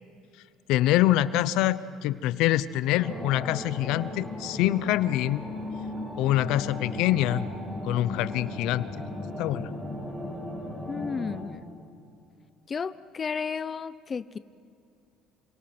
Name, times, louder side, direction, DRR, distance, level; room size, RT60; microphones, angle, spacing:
voice 1, 0.7-5.4 6.2-7.5 7.8-9.1 9.4-9.7, left 14 dB, 75° left, 16 dB, 0.8 m, -25 dB
sound 1, 2.9-11.4, left 1 dB, 10° right, 5.1 m, -37 dB
voice 2, 10.9-11.7 12.7-14.4, left 6 dB, 30° left, 15 dB, 0.6 m, -33 dB
28.5 x 27.0 x 6.1 m, 2.5 s
cardioid pair, 125°, 0 cm